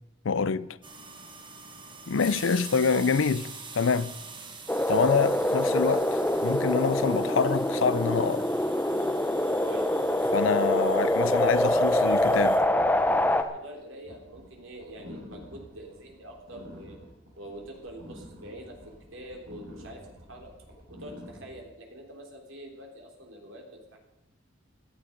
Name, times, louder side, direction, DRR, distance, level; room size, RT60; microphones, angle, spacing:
voice 1, 0.2-0.7 2.1-3.5 3.7-4.2 4.9-6.1 6.4-8.5 10.3-12.5, left 5 dB, 80° left, 0.5 m, -26 dB
sound 1, 0.8-12.6, right 4 dB, 25° right, 1.6 m, -45 dB
sound 2, 4.7-13.4, left 1 dB, 10° left, 0.8 m, -25 dB
voice 2, 13.5-17.0 17.4-18.8 19.1-20.0 20.3-20.5 20.9-24.0, right 1 dB, 80° right, 3.5 m, -45 dB
sound 3, 14.0-21.6, left 1 dB, 65° right, 5.6 m, -48 dB
17.0 x 12.0 x 5.3 m
head